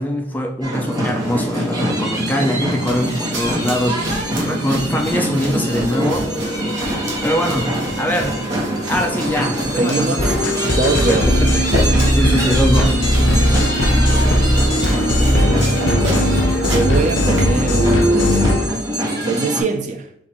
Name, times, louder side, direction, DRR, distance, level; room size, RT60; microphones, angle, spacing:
voice 1, 0.0-6.3 7.2-8.4 8.9-10.2 11.1-11.7 12.1-13.0, equal, 10° left, 0.5 m, -22 dB
sound 1, 0.6-19.6, right 1 dB, 20° right, 1.1 m, -24 dB
sound 2, 1.0-17.9, equal, 85° right, 1.4 m, -32 dB
voice 2, 9.8-10.4 10.8-11.4 15.0-16.4 16.7-18.6 19.3-20.1, right 3 dB, 40° right, 0.4 m, -23 dB
sound 3, 10.2-18.7, equal, 70° left, 0.9 m, -17 dB
4.2 x 2.5 x 4.4 m
head